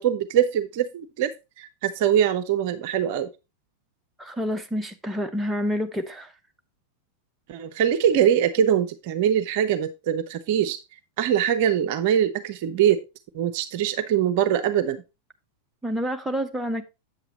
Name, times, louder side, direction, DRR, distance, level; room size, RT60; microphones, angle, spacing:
voice 1, 0.0-1.3 1.6-3.3 7.5-10.8 11.2-13.0 13.3-15.0, right 9 dB, 50° right, 0.7 m, -23 dB
voice 2, 4.2-6.3 15.8-16.8, equal, 5° right, 0.9 m, -28 dB
8.0 x 8.0 x 2.9 m
figure-of-eight pair, 90°, 0 cm